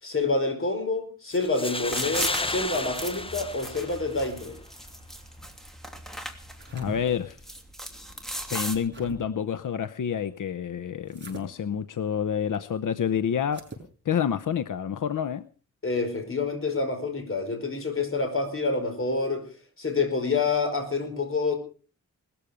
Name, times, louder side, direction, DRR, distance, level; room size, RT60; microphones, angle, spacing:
voice 1, 0.0-4.6 15.8-19.5 19.8-21.6, left 3 dB, 45° left, 6 dB, 5.0 m, -27 dB
sound 1, 1.3-4.3, left 2 dB, 20° left, 0.9 m, -32 dB
sound 2, 1.8-8.8, equal, ahead, 2.9 m, -38 dB
sound 3, 6.4-7.0 8.4-9.2 11.1-11.5 13.4-13.9, right 2 dB, 35° right, 5.7 m, -43 dB
voice 2, 6.7-7.4 8.5-13.7 14.1-15.5, left 8 dB, 90° left, 13 dB, 0.8 m, -28 dB
19.5 x 14.0 x 5.0 m, 0.39 s
wide cardioid pair, 120°, 30 cm